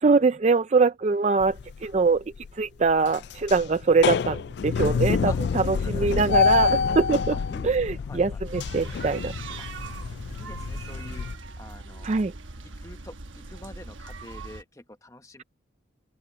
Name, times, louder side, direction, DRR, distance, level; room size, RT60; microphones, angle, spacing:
voice 1, 0.0-2.2 2.5-7.3 7.6-9.3 12.0-12.3, right 4 dB, 35° right, 0.4 m, -23 dB
sound 1, 1.4-1.9 2.4-2.5 2.9-11.3, left 5 dB, 60° left, 0.3 m, -27 dB
voice 2, 6.3-6.8 7.3-8.4 9.6-9.7 10.3-11.3 11.6-12.1 12.6-15.4, left 1 dB, 15° left, 1.1 m, -46 dB
sound 2, 8.4-14.6, right 3 dB, 85° right, 1.2 m, -40 dB
open air
head